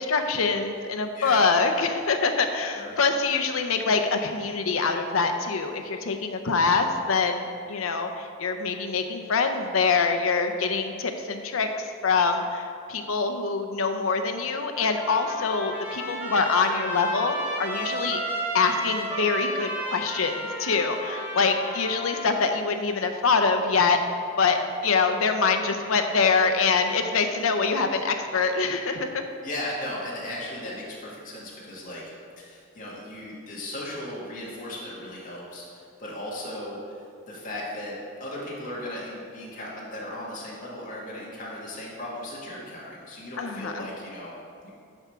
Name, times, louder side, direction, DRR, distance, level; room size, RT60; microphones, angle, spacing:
voice 1, 0.0-18.2 18.5-24.0 24.4-29.2 43.4-43.9, left 4 dB, 75° left, 6 dB, 0.6 m, -25 dB
voice 2, 1.2-1.6 2.7-3.0 29.4-32.0 32.4-44.3 44.6-44.7, left 1 dB, 40° left, -6 dB, 1.9 m, -36 dB
Trumpet, 14.8-22.4, equal, 10° right, 1.2 m, -33 dB
9.7 x 3.6 x 5.6 m, 2.3 s
head